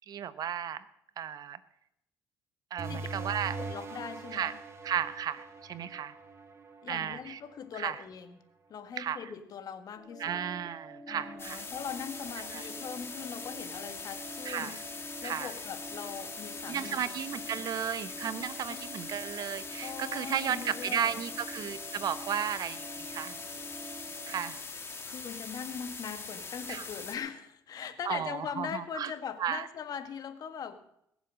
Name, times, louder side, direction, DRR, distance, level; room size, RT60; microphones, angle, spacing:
voice 1, 0.1-0.9 1.2-1.6 2.7-3.6 4.3-4.5 4.8-6.1 6.9-7.4 7.8-8.0 9.0-9.2 10.2-11.7 12.5-12.6 14.4-14.8 15.2-15.5 16.7-23.4 24.3-24.6 26.7-26.9 28.0-29.1 29.4-29.7, right 9 dB, 55° right, 13 dB, 1.1 m, -34 dB
sound 1, 2.8-8.0, right 3 dB, 35° right, 2.2 m, -42 dB
voice 2, 3.6-4.5 6.8-8.4 8.7-10.4 11.1-14.8 15.2-17.0 18.7-18.8 19.8-21.2 25.0-30.9, left 7 dB, 55° left, 8 dB, 1.7 m, -41 dB
sound 2, 10.0-24.5, right 2 dB, 10° right, 4.3 m, -47 dB
sound 3, 11.4-27.2, left 4 dB, 30° left, 2.3 m, -42 dB
20.0 x 7.3 x 6.4 m, 0.75 s
supercardioid pair, 75°, 8 cm